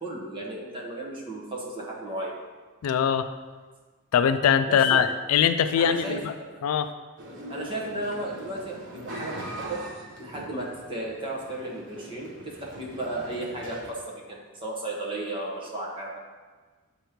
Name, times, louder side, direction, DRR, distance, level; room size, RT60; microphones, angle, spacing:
voice 1, 0.0-2.4 4.7-5.0 5.8-6.5 7.5-9.8 10.2-16.2, right 2 dB, 25° right, -3 dB, 1.1 m, -34 dB
voice 2, 2.8-3.3 4.1-6.3 6.6-6.9, left 8 dB, 70° left, 10 dB, 0.3 m, -22 dB
sound 1, 7.2-13.9, right 1 dB, 55° right, 0.9 m, -41 dB
7.9 x 3.0 x 5.0 m, 1.4 s
head